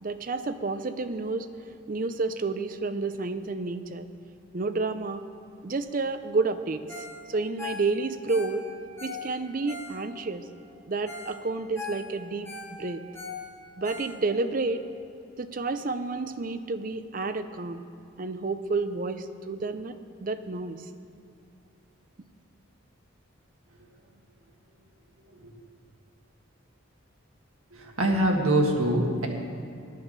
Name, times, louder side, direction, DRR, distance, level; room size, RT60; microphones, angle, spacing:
voice 1, 0.0-1.5 1.9-4.1 4.5-5.2 5.6-8.7 9.0-10.5 10.9-13.0 13.8-14.9 15.4-17.9 18.2-20.8, right 3 dB, 40° right, 10 dB, 0.5 m, -30 dB
Ringtone, 6.9-7.2 7.4-10.3 10.8-10.9 11.1-11.3 11.6-14.5 14.9-15.0, left 4 dB, 10° left, 1.7 m, -40 dB
voice 2, 27.7-29.3, right 1 dB, 85° right, 1 dB, 1.7 m, -24 dB
11.0 x 9.2 x 6.6 m, 2.6 s
head